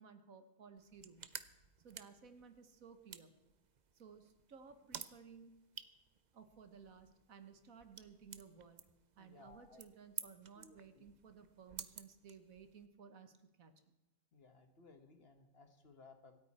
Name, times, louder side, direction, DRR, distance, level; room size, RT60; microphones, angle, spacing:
voice 1, 0.0-1.3 1.8-3.3 3.9-5.5 6.3-8.8 9.1-13.7, right 6 dB, 75° right, 9 dB, 1.7 m, -58 dB
sound 1, 0.8-12.9, right 7 dB, 45° right, 0.6 m, -54 dB
voice 2, 9.2-9.8 10.6-11.1 14.3-16.4, left 3 dB, 45° left, 7 dB, 1.5 m, -61 dB
25.5 x 9.1 x 4.3 m, 1.0 s
omnidirectional pair, 1.5 m